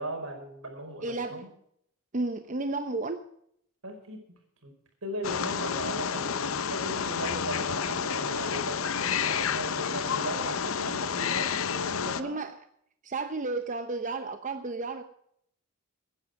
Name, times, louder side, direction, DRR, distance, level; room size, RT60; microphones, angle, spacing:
voice 1, 0.0-1.5 3.8-4.2 4.6-4.7 5.0-12.4, right 1 dB, 80° right, 4 dB, 4.9 m, -38 dB
voice 2, 1.0-1.5 2.1-3.3 5.2-5.3 12.2-12.7 13.0-15.0, right 3 dB, 35° right, 8 dB, 0.9 m, -32 dB
Wild animals, 5.2-12.2, left 7 dB, 70° left, 0.8 m, -30 dB
17.5 x 10.5 x 4.8 m, 0.70 s
head